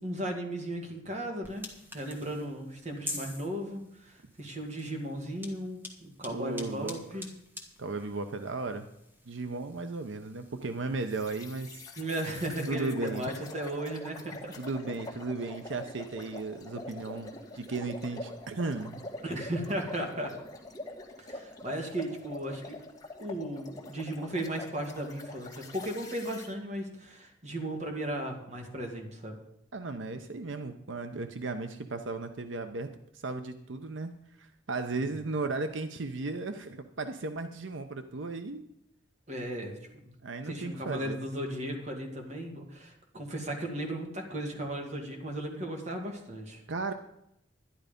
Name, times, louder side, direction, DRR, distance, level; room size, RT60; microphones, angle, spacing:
voice 1, 0.0-1.7 1.9-7.3 12.0-14.5 19.2-20.3 21.2-22.8 23.2-29.4 35.0-35.2 39.3-39.8 40.0-40.1 40.5-46.6, right 1 dB, 40° right, 2 dB, 2.2 m, -36 dB
sound 1, 1.4-11.1, left 1 dB, 10° right, 1.6 m, -47 dB
voice 2, 6.3-7.0 7.8-8.9 9.3-11.8 12.7-13.3 14.6-19.0 29.7-32.9 33.1-38.6 40.2-41.2 46.7-46.9, right 3 dB, 85° right, 8 dB, 0.8 m, -35 dB
sound 2, 11.1-26.5, left 2 dB, 20° left, 1.8 m, -45 dB
11.5 x 11.0 x 5.2 m, 0.80 s
head